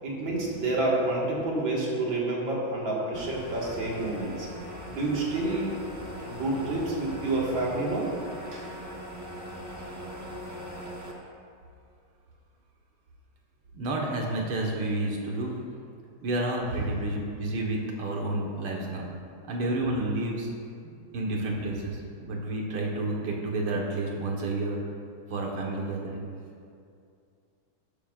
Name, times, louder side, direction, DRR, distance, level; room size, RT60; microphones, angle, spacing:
voice 1, 0.0-4.5 4.9-5.7 6.2-8.1 8.5-8.6, right 2 dB, 65° right, -4 dB, 2.4 m, -28 dB
sound 1, 3.1-11.1, equal, 20° right, 0.5 m, -40 dB
voice 2, 13.7-15.6 16.2-19.1 19.5-20.5 20.8-24.8 25.3-26.2, right 2 dB, 80° right, -1 dB, 2.1 m, -30 dB
12.5 x 10.5 x 2.4 m, 2.4 s
omnidirectional pair, 2.3 m